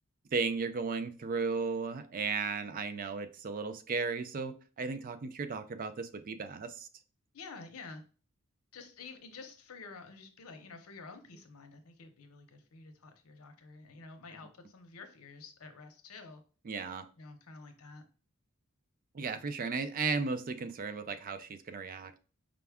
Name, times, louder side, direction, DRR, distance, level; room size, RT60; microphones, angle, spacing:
voice 1, 0.3-6.9 16.7-17.1 19.1-22.2, right 4 dB, 40° right, 11 dB, 0.3 m, -35 dB
voice 2, 7.3-8.0 8.7-16.4 17.2-18.0, left 4 dB, 70° left, 7 dB, 0.7 m, -50 dB
5.0 x 2.3 x 3.4 m, 0.37 s
head